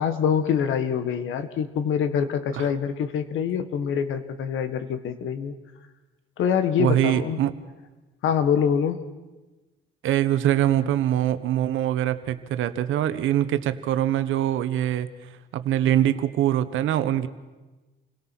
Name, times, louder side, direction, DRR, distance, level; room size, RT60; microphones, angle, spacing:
voice 1, 0.0-5.5 6.4-7.4 8.2-9.0, left 7 dB, 80° left, 10 dB, 1.7 m, -25 dB
voice 2, 6.8-7.5 10.0-15.1 15.5-17.3, right 12 dB, 85° right, 12 dB, 1.2 m, -23 dB
28.0 x 17.5 x 6.1 m, 1.2 s
cardioid pair, 90°, 20 cm